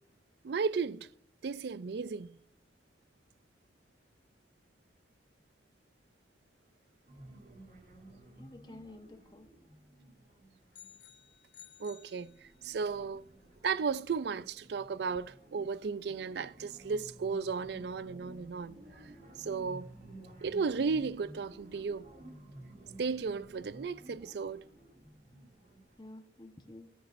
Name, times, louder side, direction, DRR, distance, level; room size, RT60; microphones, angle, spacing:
voice 1, 0.4-1.1 1.4-2.3 11.8-13.3 13.6-18.8 19.4-19.9 20.4-22.1 23.0-24.6, right 5 dB, 65° right, 0.4 m, -34 dB
sound 1, 7.1-11.3 11.7-26.1, right 1 dB, 50° right, 2.6 m, -54 dB
voice 2, 8.4-9.5 26.0-26.9, left 2 dB, 25° left, 1.0 m, -51 dB
sound 2, 10.7-12.9, left 8 dB, 85° left, 0.8 m, -56 dB
16.5 x 9.2 x 2.6 m
head